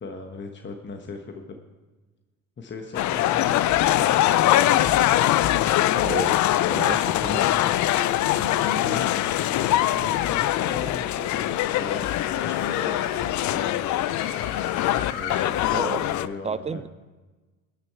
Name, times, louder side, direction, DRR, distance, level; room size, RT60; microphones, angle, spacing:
voice 1, 0.0-1.6 2.6-5.1 7.4-7.8 8.6-9.1 9.5-12.1 12.4-13.1 13.4-14.0 15.1-16.8, left 4 dB, 25° left, 4 dB, 1.1 m, -38 dB
sound 1, 2.9-16.3, left 14 dB, 45° left, 0.5 m, -23 dB
voice 2, 5.9-7.5 10.0-10.2 15.7-16.1 16.4-16.9, right 6 dB, 15° right, 16 dB, 0.3 m, -32 dB
sound 2, 8.0-15.7, left 8 dB, 75° left, 1.2 m, -35 dB
18.0 x 6.6 x 4.6 m, 1.3 s
hypercardioid pair, 75°, 43 cm